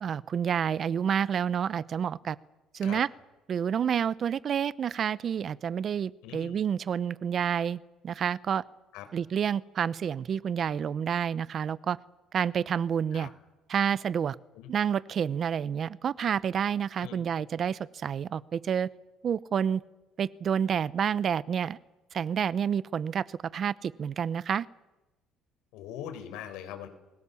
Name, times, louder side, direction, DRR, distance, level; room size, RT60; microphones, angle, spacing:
voice 1, 0.0-2.4 2.7-3.1 3.5-8.6 9.1-12.0 12.3-13.3 13.7-14.4 14.7-18.9 19.2-19.8 20.2-21.8 22.1-24.7, right 8 dB, 40° right, 19 dB, 0.8 m, -29 dB
voice 2, 6.2-6.6 8.9-9.1 13.1-13.3 14.5-14.7 17.0-17.2 25.7-26.9, left 10 dB, 80° left, 8 dB, 4.7 m, -41 dB
28.5 x 21.0 x 7.1 m, 1.1 s
cardioid pair, 125°, 0 cm